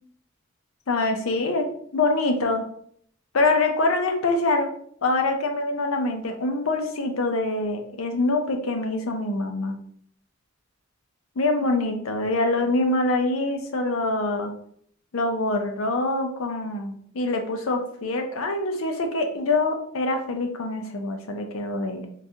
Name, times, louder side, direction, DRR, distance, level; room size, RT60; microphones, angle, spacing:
voice 1, 0.9-2.7 3.3-4.7 5.0-9.8 11.4-14.5 15.1-22.1, left 2 dB, 85° left, 5 dB, 0.6 m, -25 dB
3.7 x 2.4 x 2.7 m, 0.62 s
head